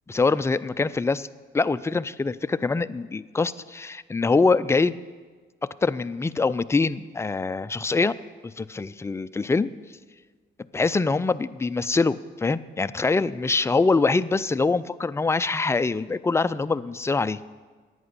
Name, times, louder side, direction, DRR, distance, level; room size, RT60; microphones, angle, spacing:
voice 1, 0.1-1.3 1.5-5.0 5.8-8.1 8.4-9.7 10.7-17.4, left 3 dB, 15° left, 14 dB, 0.4 m, -24 dB
11.0 x 8.8 x 8.2 m, 1.5 s
cardioid pair, 90°, 20 cm